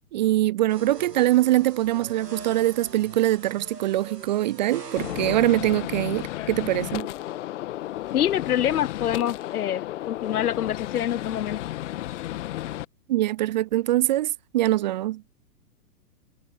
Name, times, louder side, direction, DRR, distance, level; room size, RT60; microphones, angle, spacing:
voice 1, 0.1-7.1 13.1-15.2, right 15 dB, 30° right, 0.5 m, -23 dB
sound 1, 0.7-5.7, right 4 dB, 80° right, 2.9 m, -42 dB
Gunshot gunfire, 5.0-12.8, left 14 dB, 50° left, 1.6 m, -33 dB
voice 2, 8.1-11.6, left 11 dB, 65° left, 0.9 m, -26 dB
figure-of-eight pair, 115°, 48 cm